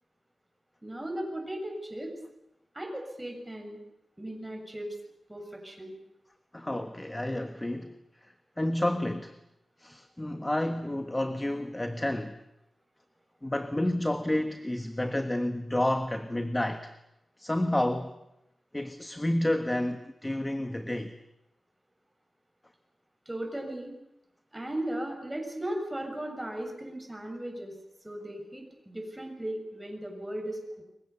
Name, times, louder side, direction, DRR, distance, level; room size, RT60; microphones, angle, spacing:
voice 1, 0.8-2.1 2.7-3.8 4.2-5.0 5.3-5.9 23.3-23.9 24.5-27.7 28.0-30.8, right 1 dB, 10° right, 7.2 m, -37 dB
voice 2, 6.5-7.9 8.6-9.4 9.8-12.4 13.4-16.9 17.4-18.1 18.7-21.2, left 1 dB, 15° left, 1.4 m, -30 dB
29.0 x 23.5 x 7.1 m
wide cardioid pair, 110°, 0 cm